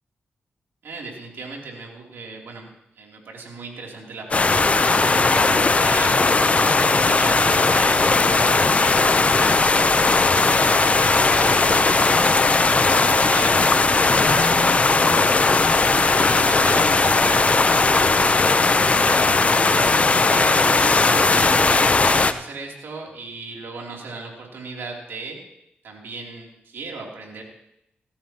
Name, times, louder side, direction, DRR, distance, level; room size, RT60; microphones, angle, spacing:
voice 1, 0.8-2.7 2.9-5.3 5.8-9.6 10.2-12.3 12.6-13.7 14.2-18.1 18.6-21.5 22.1-25.4 25.8-27.4, right 3 dB, 80° right, 0 dB, 3.2 m, -37 dB
sound 1, 4.3-22.3, left 3 dB, 35° left, 0.7 m, -18 dB
18.0 x 14.0 x 3.0 m, 0.83 s
cardioid pair, 65°, 4 cm